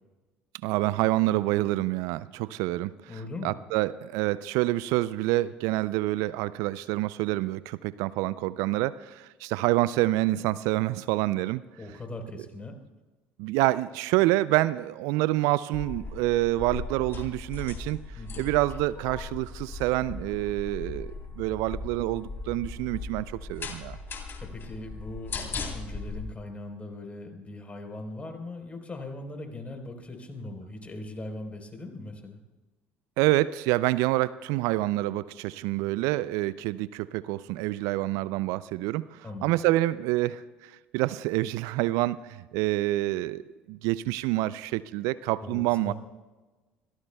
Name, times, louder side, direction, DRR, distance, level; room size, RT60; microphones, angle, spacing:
voice 1, 0.6-2.9 3.4-11.6 13.4-18.0 18.4-24.0 33.2-45.9, right 17 dB, 70° right, 18 dB, 0.4 m, -27 dB
voice 2, 3.1-3.5 11.8-12.7 18.1-18.5 24.2-32.4 39.2-39.6 45.4-45.9, left 2 dB, 25° left, 4 dB, 3.9 m, -40 dB
sound 1, 15.7-26.2, left 4 dB, 40° left, 3.3 m, -38 dB
26.0 x 17.5 x 2.3 m, 1.2 s
hypercardioid pair, 60°, 6 cm